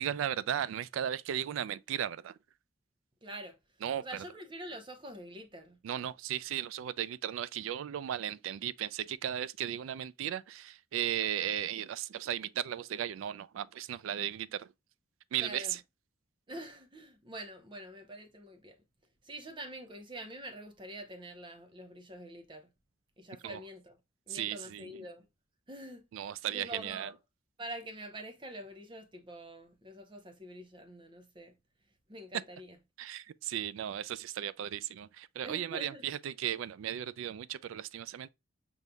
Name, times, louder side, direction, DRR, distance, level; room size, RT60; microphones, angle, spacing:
voice 1, 0.0-2.3 3.8-4.2 5.8-14.7 15.3-15.8 23.4-23.6 24.3-24.9 26.1-27.1 33.0-38.3, right 10 dB, 75° right, 0.3 m, -36 dB
voice 2, 3.2-3.6 4.0-5.8 15.4-15.8 16.5-18.8 19.2-22.7 23.2-24.0 24.3-25.2 25.7-26.0 26.5-27.1 27.6-31.5 32.1-32.8 35.4-36.1, right 1 dB, 25° right, 0.7 m, -45 dB
5.3 x 3.1 x 2.2 m
head